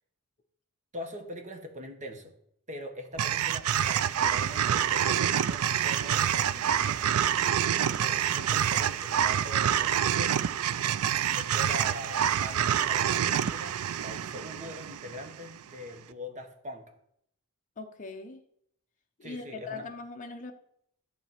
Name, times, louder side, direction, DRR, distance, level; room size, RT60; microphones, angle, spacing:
voice 1, 0.9-2.3 2.7-10.5 11.3-16.8 19.2-19.9, equal, 35° right, 5 dB, 1.4 m, -43 dB
sound 1, 3.2-15.5, right 9 dB, 80° right, 0.4 m, -27 dB
voice 2, 17.8-18.4 19.2-20.5, left 3 dB, 35° left, 3 dB, 0.7 m, -40 dB
12.5 x 4.2 x 7.3 m, 0.71 s
head